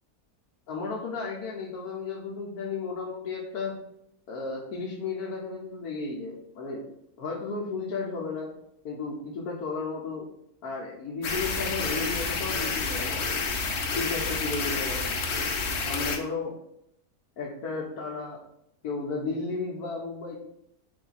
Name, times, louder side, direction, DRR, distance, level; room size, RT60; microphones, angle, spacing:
voice 1, 0.7-3.7 4.3-6.9 7.2-8.5 8.8-10.3 10.6-13.3 13.9-15.2 15.6-16.6 17.4-18.4 18.8-20.4, left 4 dB, 90° left, -4 dB, 1.2 m, -34 dB
sound 1, 11.2-16.2, left 4 dB, 60° left, 0.7 m, -29 dB
3.5 x 2.6 x 3.9 m, 0.76 s
omnidirectional pair, 1.6 m